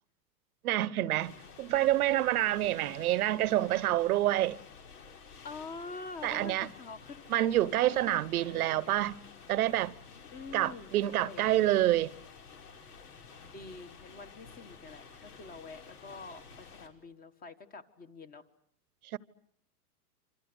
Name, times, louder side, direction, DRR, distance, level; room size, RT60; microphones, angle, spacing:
voice 1, 0.6-4.6 6.2-6.7 7.3-9.2 9.5-9.9 10.5-12.1 19.1-19.2, right 14 dB, 70° right, 1.1 m, -27 dB
sound 1, 1.2-16.9, left 5 dB, 75° left, 4.7 m, -52 dB
voice 2, 5.4-9.0 10.3-11.5 13.5-18.4, left 4 dB, 20° left, 1.6 m, -46 dB
27.0 x 26.0 x 8.0 m
hypercardioid pair, 140°, 46 cm